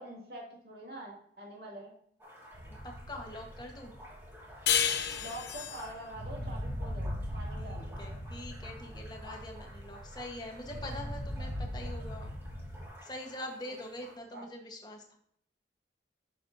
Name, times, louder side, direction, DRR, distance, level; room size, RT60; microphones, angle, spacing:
voice 1, 0.0-1.9 5.1-8.0 14.3-14.4, right 1 dB, 65° right, -2 dB, 2.3 m, -45 dB
sound 1, 2.2-14.2, equal, 15° right, 1.6 m, -53 dB
sound 2, 2.5-12.9, equal, 30° right, 1.9 m, -41 dB
voice 2, 2.8-3.9 7.6-12.3 13.0-15.2, left 1 dB, 25° left, 2 dB, 1.2 m, -44 dB
sound 3, 4.7-7.8, left 9 dB, 75° left, 0.7 m, -32 dB
9.2 x 6.4 x 2.7 m, 0.69 s
head